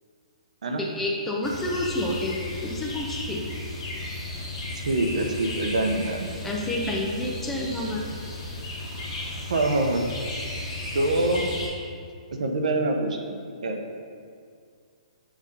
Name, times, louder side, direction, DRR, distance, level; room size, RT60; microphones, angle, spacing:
voice 1, 0.8-3.4 6.4-8.0, left 1 dB, 5° left, -2 dB, 0.4 m, -29 dB
sound 1, 1.4-11.7, left 2 dB, 20° left, 1.4 m, -35 dB
voice 2, 4.7-6.3 9.5-10.1 10.9-11.4 12.4-13.8, right 2 dB, 70° right, 3 dB, 0.8 m, -25 dB
7.3 x 2.6 x 5.3 m, 2.2 s
hypercardioid pair, 170°, 4 cm